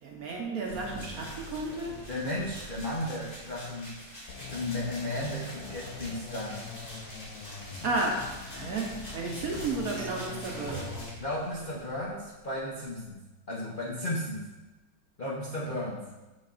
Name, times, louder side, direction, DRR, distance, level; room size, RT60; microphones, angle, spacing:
voice 1, 0.0-2.0 7.8-10.9, right 2 dB, 60° right, 0 dB, 1.0 m, -33 dB
sound 1, 0.7-11.8, equal, 25° left, 2.0 m, -46 dB
sound 2, 0.7-13.1, right 3 dB, 80° right, 1.5 m, -47 dB
voice 2, 2.1-4.0 4.5-6.7 11.2-14.5 15.2-16.1, left 1 dB, 50° left, -6 dB, 0.6 m, -34 dB
sound 3, 4.3-11.2, left 5 dB, 70° left, 0.9 m, -44 dB
6.3 x 6.3 x 2.5 m, 1.1 s
omnidirectional pair, 2.0 m